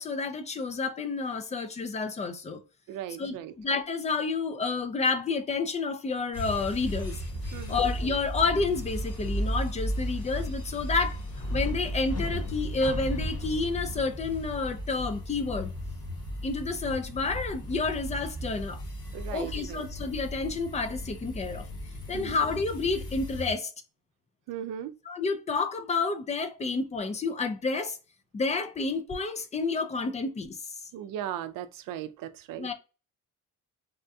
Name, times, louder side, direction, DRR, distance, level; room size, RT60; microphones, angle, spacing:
voice 1, 0.0-2.6 3.2-7.2 7.7-11.2 11.5-15.7 16.4-18.8 19.3-21.7 22.1-23.7 25.1-28.0 28.3-30.6 32.6-32.7, left 4 dB, 20° left, 0.4 m, -30 dB
voice 2, 2.9-3.5 7.5-7.9 19.1-19.8 22.1-22.4 24.5-24.9 30.9-32.7, right 10 dB, 85° right, 0.5 m, -37 dB
sound 1, 6.3-23.5, equal, 50° left, 1.3 m, -35 dB
3.5 x 2.2 x 2.6 m
cardioid pair, 130°, 32 cm